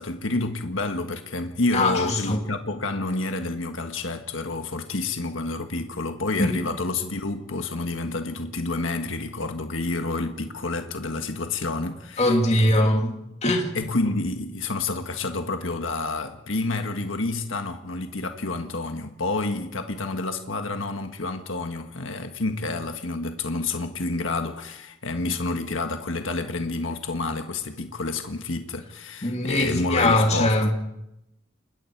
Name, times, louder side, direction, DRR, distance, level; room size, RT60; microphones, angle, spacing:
voice 1, 0.0-12.8 13.7-30.6, left 2 dB, 75° left, 1.5 m, -29 dB
voice 2, 1.7-2.4 6.4-6.5 12.2-13.7 29.2-30.7, left 1 dB, 35° left, 2.7 m, -22 dB
29.5 x 21.0 x 4.7 m
head